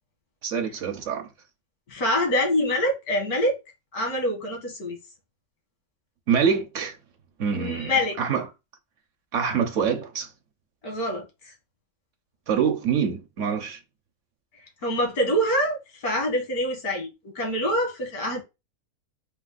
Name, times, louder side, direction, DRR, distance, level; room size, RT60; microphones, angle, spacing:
voice 1, 0.4-1.3 6.3-7.0 7.4-7.9 8.2-8.5 9.3-10.3 12.5-13.8, right 7 dB, 60° right, 1.1 m, -25 dB
voice 2, 1.9-3.6 3.9-5.0 7.5-8.1 10.8-11.3 14.8-18.4, equal, 90° left, 1.9 m, -25 dB
4.3 x 2.8 x 3.9 m
omnidirectional pair, 1.5 m